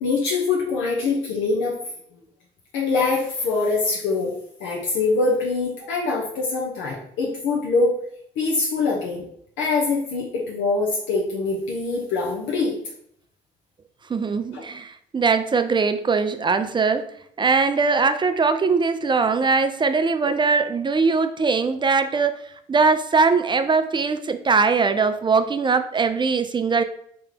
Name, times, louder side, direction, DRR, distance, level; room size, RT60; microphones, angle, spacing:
voice 1, 0.0-1.8 2.7-4.3 4.6-8.0 8.4-9.2 9.6-12.8 14.5-14.6, left 3 dB, 70° left, -4 dB, 0.7 m, -23 dB
voice 2, 14.1-17.1 17.4-22.4 22.7-26.8, right 4 dB, 25° right, 9 dB, 0.4 m, -21 dB
3.3 x 2.9 x 3.8 m, 0.68 s
hypercardioid pair, 45°, 20 cm